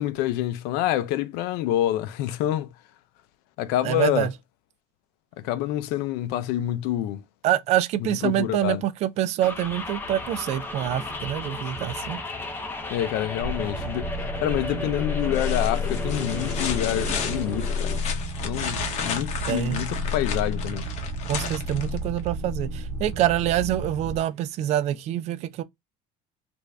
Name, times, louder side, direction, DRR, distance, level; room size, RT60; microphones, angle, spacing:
voice 1, 0.0-2.7 3.6-4.3 5.4-7.2 8.2-8.8 12.9-14.1 14.4-18.0 18.4-20.8, left 13 dB, 80° left, 0.5 m, -27 dB
voice 2, 3.8-4.3 7.4-12.2 19.5-19.8 21.3-25.6, right 12 dB, 45° right, 0.3 m, -26 dB
sound 1, 9.4-18.0, left 2 dB, 15° left, 0.5 m, -34 dB
sound 2, 13.4-24.2, left 1 dB, 85° right, 0.9 m, -31 dB
sound 3, 14.5-14.9 15.3-22.3 24.1-24.2, left 6 dB, 45° left, 0.7 m, -34 dB
3.3 x 2.6 x 3.1 m
cardioid pair, 180°, 16 cm